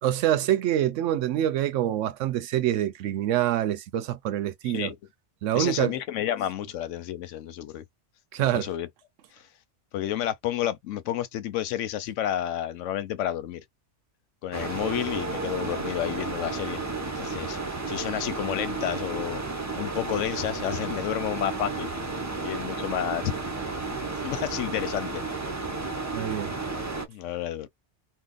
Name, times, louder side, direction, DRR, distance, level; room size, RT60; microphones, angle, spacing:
voice 1, 0.0-4.9 5.4-5.9 8.3-8.7 26.1-26.6, right 12 dB, 90° right, 0.9 m, -26 dB
voice 2, 4.6-5.0 5.5-7.8 8.4-8.9 9.3-9.5 9.9-13.6 14.4-16.8 17.2-19.4 19.8-21.9 22.4-23.3 24.2-25.3 27.1-27.7, left 11 dB, 85° left, 0.9 m, -30 dB
sound 1, 14.5-27.1, right 3 dB, 20° right, 0.4 m, -32 dB
2.8 x 2.1 x 3.8 m
omnidirectional pair, 1.2 m